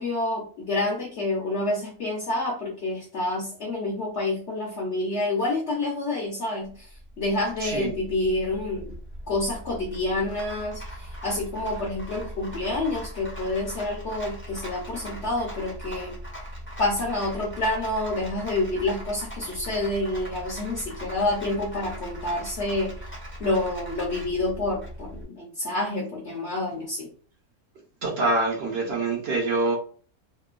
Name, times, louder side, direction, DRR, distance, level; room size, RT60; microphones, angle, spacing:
voice 1, 0.0-6.7 7.2-8.9 9.3-10.8 11.2-16.1 16.8-22.9 23.4-27.1, left 2 dB, 60° left, 0.8 m, -28 dB
Rattle, 6.7-25.3, equal, 15° left, 0.4 m, -39 dB
voice 2, 7.6-7.9 28.0-29.8, right 2 dB, 55° right, 0.7 m, -25 dB
2.9 x 2.1 x 2.3 m
omnidirectional pair, 1.6 m